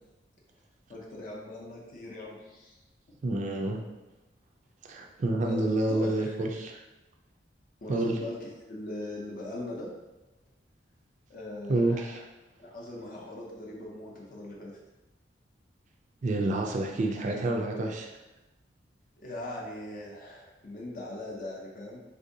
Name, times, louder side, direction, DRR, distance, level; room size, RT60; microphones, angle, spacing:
voice 1, 0.9-2.8 3.1-3.2 5.4-6.4 7.8-9.9 11.3-12.2 12.6-14.8 19.2-22.0, left 1 dB, 50° left, -3 dB, 0.5 m, -40 dB
voice 2, 3.2-3.8 4.9-6.8 7.9-8.1 11.7-12.2 16.2-18.1, right 2 dB, 45° right, 1 dB, 0.3 m, -28 dB
3.5 x 2.7 x 2.6 m, 1.0 s
head